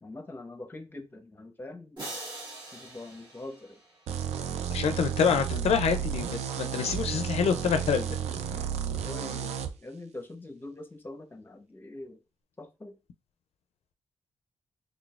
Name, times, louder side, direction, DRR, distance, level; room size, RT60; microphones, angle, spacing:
voice 1, 0.0-2.0 2.7-3.8 8.5-8.6 9.1-12.2 12.6-13.0, left 2 dB, 20° left, 0.8 m, -43 dB
sound 1, 2.0-4.3, right 2 dB, 45° right, 1.8 m, -43 dB
sound 2, 4.1-9.7, right 8 dB, 90° right, 0.4 m, -32 dB
voice 2, 4.7-8.1, left 7 dB, 75° left, 0.4 m, -26 dB
3.8 x 3.4 x 2.4 m
cardioid pair, 100°, 11 cm